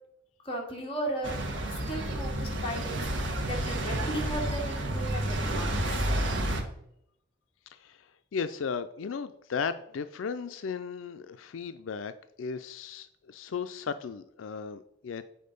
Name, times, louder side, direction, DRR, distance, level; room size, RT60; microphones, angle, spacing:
voice 1, 0.4-1.4 1.7-6.0, right 1 dB, 30° left, -1 dB, 2.1 m, -36 dB
sound 1, 1.2-6.6, right 1 dB, 70° right, 1.4 m, -30 dB
voice 2, 8.3-12.1 12.4-15.2, left 6 dB, 90° left, 11 dB, 0.4 m, -35 dB
8.6 x 4.2 x 5.3 m, 0.75 s
head